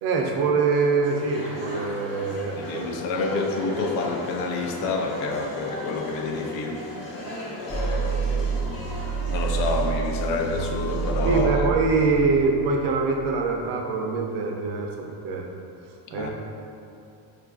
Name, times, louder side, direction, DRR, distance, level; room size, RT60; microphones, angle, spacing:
voice 1, 0.0-2.9 11.2-14.9 15.2-15.4 16.1-16.3, right 4 dB, 60° right, 2 dB, 0.5 m, -24 dB
sound 1, 1.0-11.4, left 1 dB, 55° left, 0.8 m, -37 dB
voice 2, 2.6-6.8 7.6-9.0 9.3-11.7 16.1-16.3, left 3 dB, 75° left, 2 dB, 0.6 m, -28 dB
sound 2, 7.7-13.6, right 5 dB, 5° right, 0.6 m, -28 dB
4.9 x 2.5 x 2.3 m, 2.6 s
cardioid pair, 155°, 45 cm